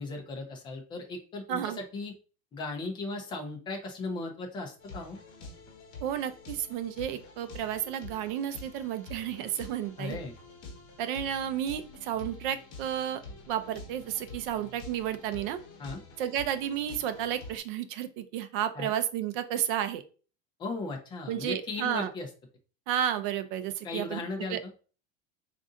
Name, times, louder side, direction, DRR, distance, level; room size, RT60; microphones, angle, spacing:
voice 1, 0.0-2.1 2.5-5.2 10.0-10.4 15.8-16.0 18.7-18.9 20.6-22.3 23.8-24.6, left 3 dB, 15° left, 3 dB, 0.5 m, -37 dB
voice 2, 1.5-1.8 6.0-10.2 11.0-15.6 16.2-20.0 21.3-22.1 22.9-24.2 24.5-24.6, right 10 dB, 50° right, 10 dB, 0.5 m, -32 dB
sound 1, 4.8-17.6, left 2 dB, 40° left, 1.1 m, -47 dB
3.8 x 2.5 x 3.7 m, 0.37 s
supercardioid pair, 175°, 35 cm